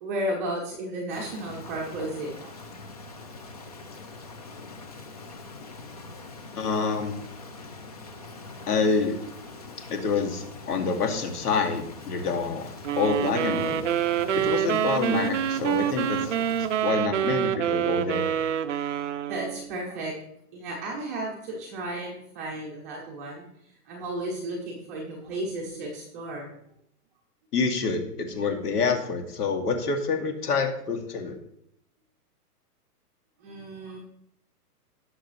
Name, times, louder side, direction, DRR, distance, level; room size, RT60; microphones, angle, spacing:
voice 1, 0.0-2.8 19.3-20.1 20.5-23.5 23.9-26.5 33.4-34.0, right 1 dB, 10° right, -3 dB, 0.7 m, -34 dB
Rain, 1.1-16.9, left 3 dB, 25° left, 0.6 m, -43 dB
voice 2, 6.5-7.2 8.7-9.2 9.9-13.9 14.4-16.3 16.8-18.3 27.5-31.4, left 4 dB, 75° left, 4 dB, 2.3 m, -27 dB
sound 1, 12.8-19.7, right 10 dB, 50° right, 0.6 m, -26 dB
17.0 x 6.4 x 3.1 m, 0.73 s
hypercardioid pair, 170°, 47 cm